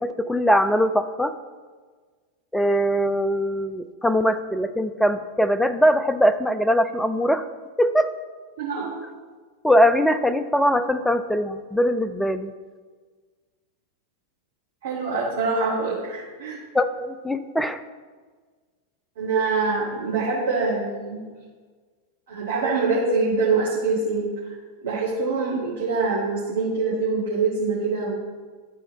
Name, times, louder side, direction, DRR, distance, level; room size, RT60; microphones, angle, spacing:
voice 1, 0.0-1.3 2.5-7.5 7.8-8.2 9.6-12.5 16.7-17.8, equal, 5° left, 10 dB, 0.4 m, -21 dB
voice 2, 8.6-8.9 14.8-16.6 19.2-21.2 22.3-24.5 24.8-28.2, right 4 dB, 60° right, -8 dB, 1.9 m, -24 dB
11.5 x 4.4 x 3.8 m, 1.5 s
figure-of-eight pair, 90°, 0 cm